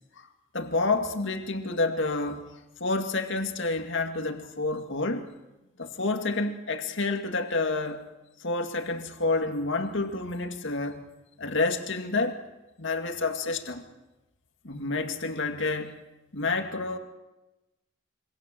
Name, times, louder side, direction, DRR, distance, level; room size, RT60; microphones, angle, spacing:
voice 1, 0.5-2.5 2.8-5.2 5.8-8.0 8.4-11.0 11.4-12.4 12.8-13.8 14.6-16.0 16.3-17.0, left 3 dB, 65° left, 5 dB, 2.2 m, -29 dB
27.5 x 24.0 x 7.7 m, 1.1 s
head